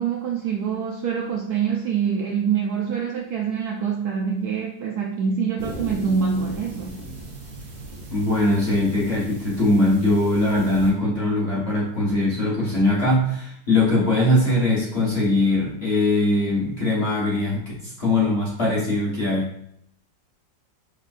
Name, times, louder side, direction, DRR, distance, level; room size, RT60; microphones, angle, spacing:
voice 1, 0.0-7.0, right 6 dB, 75° right, 0 dB, 0.9 m, -25 dB
sound 1, 5.6-10.9, right 1 dB, 45° right, 1.0 m, -37 dB
voice 2, 8.1-19.5, left 2 dB, 40° left, -6 dB, 1.0 m, -21 dB
5.7 x 3.3 x 2.5 m, 0.71 s
omnidirectional pair, 2.1 m